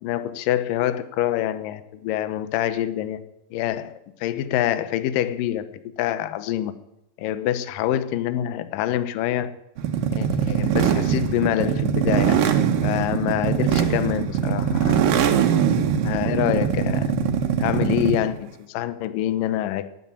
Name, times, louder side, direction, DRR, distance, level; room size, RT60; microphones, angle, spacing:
voice 1, 0.0-3.2 3.5-5.7 6.0-6.7 7.2-9.5 10.1-12.5 12.8-15.1 16.0-17.1 17.6-19.9, left 12 dB, 75° left, 2.4 m, -26 dB
sound 1, 9.8-18.3, right 8 dB, 70° right, 2.8 m, -22 dB
15.0 x 9.6 x 9.8 m
omnidirectional pair, 4.2 m